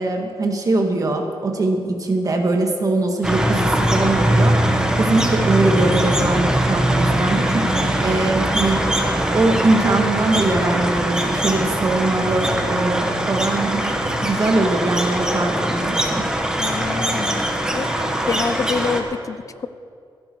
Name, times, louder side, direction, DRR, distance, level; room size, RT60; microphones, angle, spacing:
voice 1, 0.0-8.8 9.3-16.2, right 2 dB, 40° right, 3 dB, 1.8 m, -21 dB
sound 1, 3.2-19.0, right 1 dB, 10° right, 1.4 m, -21 dB
voice 2, 16.6-17.5 17.7-17.9 18.2-19.7, left 5 dB, 40° left, 13 dB, 0.6 m, -26 dB
16.0 x 13.0 x 4.6 m, 2.5 s
cardioid pair, 110°, 9 cm